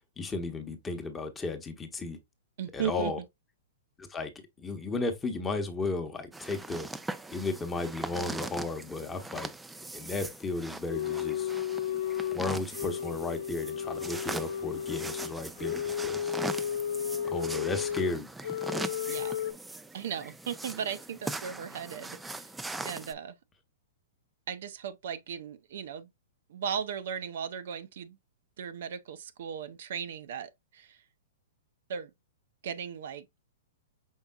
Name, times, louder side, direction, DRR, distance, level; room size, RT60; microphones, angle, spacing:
voice 1, 0.2-2.2 2.7-3.2 4.0-4.3 4.6-6.9 7.3-9.5 9.9-11.5 12.3-16.4 17.3-18.3, left 3 dB, 15° left, 0.9 m, -34 dB
voice 2, 2.6-3.1 19.1-19.4 19.9-22.5 22.8-23.3 24.5-26.1 26.5-28.2 28.6-31.0 31.9-32.1 32.6-33.4, right 8 dB, 65° right, 0.5 m, -37 dB
sound 1, 6.3-23.1, right 2 dB, 5° right, 0.3 m, -41 dB
sound 2, 10.9-12.4 12.7-18.1 18.4-19.5, left 9 dB, 65° left, 0.4 m, -33 dB
5.4 x 3.5 x 2.2 m
hypercardioid pair, 130°, 0 cm